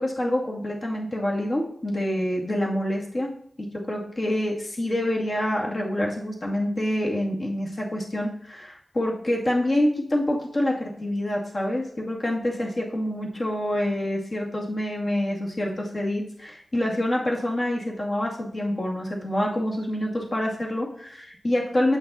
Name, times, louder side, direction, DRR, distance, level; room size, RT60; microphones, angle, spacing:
voice 1, 0.0-3.3 3.6-22.0, left 1 dB, 45° left, -2 dB, 2.4 m, -26 dB
7.9 x 5.7 x 4.2 m, 0.66 s
wide cardioid pair, 65°, 0 cm